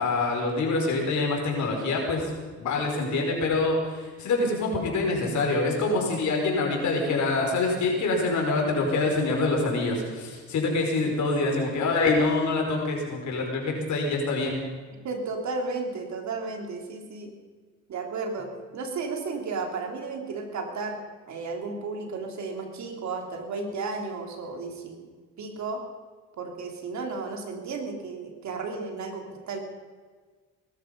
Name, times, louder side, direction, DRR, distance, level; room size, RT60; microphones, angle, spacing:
voice 1, 0.0-2.3 2.6-14.6, left 3 dB, 70° left, 1 dB, 5.2 m, -25 dB
voice 2, 15.0-17.3 17.9-18.5 18.7-21.0 21.3-25.0 25.4-25.8 26.4-29.6, right 4 dB, 65° right, 3 dB, 3.3 m, -33 dB
20.5 x 13.0 x 5.4 m, 1.5 s
cardioid pair, 90°, 30 cm